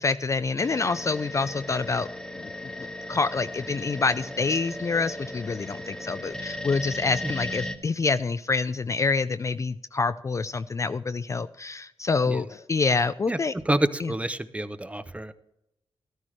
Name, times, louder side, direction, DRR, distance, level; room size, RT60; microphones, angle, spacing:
voice 1, 0.0-2.1 2.3-2.5 3.1-13.5 14.0-14.1, left 4 dB, 30° left, 12 dB, 0.3 m, -27 dB
sound 1, 0.6-7.7, left 1 dB, 5° left, 1.3 m, -37 dB
voice 2, 13.3-15.3, right 1 dB, 15° right, 12 dB, 0.7 m, -28 dB
13.5 x 13.0 x 3.2 m, 0.85 s
cardioid pair, 90°, 10 cm